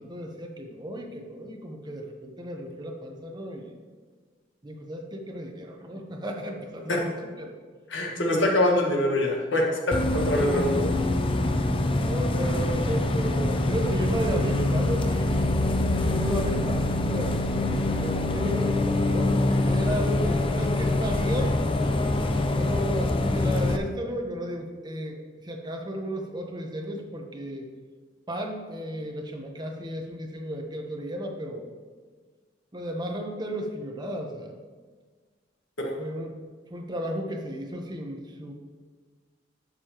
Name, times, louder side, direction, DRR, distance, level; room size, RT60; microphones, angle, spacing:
voice 1, 0.0-3.7 4.6-7.1 7.4-7.5 10.3-10.7 12.0-17.4 18.0-21.5 22.5-25.2 25.5-27.6 28.3-31.7 32.7-34.5 36.0-36.3 36.7-38.5, equal, 25° right, 2 dB, 1.0 m, -34 dB
voice 2, 7.9-10.9 35.8-36.0, left 1 dB, 85° left, 0 dB, 1.6 m, -24 dB
Bus, 9.9-23.8, left 2 dB, 30° left, 0.5 m, -25 dB
12.0 x 6.6 x 3.0 m, 1.5 s
head